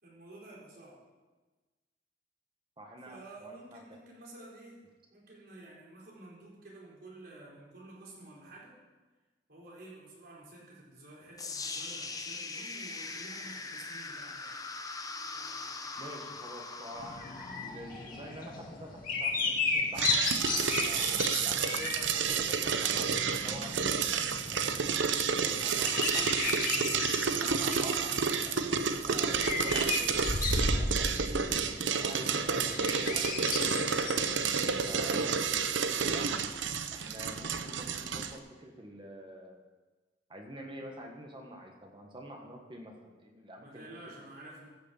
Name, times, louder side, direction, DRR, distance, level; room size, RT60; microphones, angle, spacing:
voice 1, 0.0-1.0 3.0-4.8 5.1-8.7 9.5-14.5 32.1-33.3 43.6-44.7, right 2 dB, 60° right, -5 dB, 4.3 m, -51 dB
voice 2, 2.8-3.8 16.0-31.5 31.9-34.1 34.8-36.3 36.9-39.6 40.3-44.1, equal, 25° right, 2 dB, 1.5 m, -47 dB
sound 1, 11.4-19.4, left 3 dB, 20° left, 0.9 m, -42 dB
sound 2, 17.0-35.5, left 3 dB, 50° left, 1.9 m, -35 dB
sound 3, 20.0-38.3, right 6 dB, 85° right, 0.8 m, -30 dB
14.5 x 6.5 x 7.3 m, 1.3 s
head